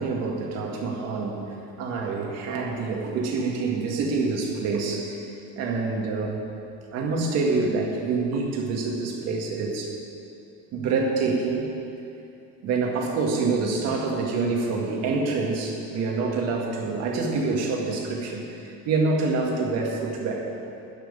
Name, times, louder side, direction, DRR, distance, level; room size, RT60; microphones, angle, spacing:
voice 1, 0.0-6.4 6.9-10.0 10.7-11.7 12.6-20.5, right 3 dB, 55° right, 0 dB, 2.1 m, -26 dB
12.0 x 6.5 x 9.8 m, 2.7 s
cardioid pair, 155°, 31 cm